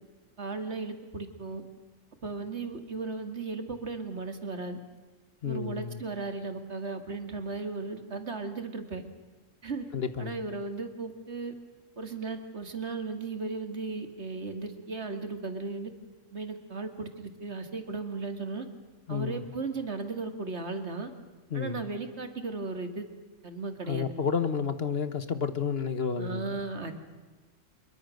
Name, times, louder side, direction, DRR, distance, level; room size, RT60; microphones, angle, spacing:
voice 1, 0.4-1.6 2.2-4.8 5.4-9.0 9.6-9.9 10.2-11.5 12.0-15.9 16.3-18.7 19.1-21.1 21.5-23.1 23.4-24.1 26.2-26.9, right 3 dB, 55° right, 2.5 m, -36 dB
voice 2, 5.4-6.0 9.9-10.4 19.1-19.5 21.5-21.8 23.9-26.6, left 6 dB, 50° left, 1.3 m, -31 dB
25.0 x 23.0 x 6.5 m
omnidirectional pair, 1.3 m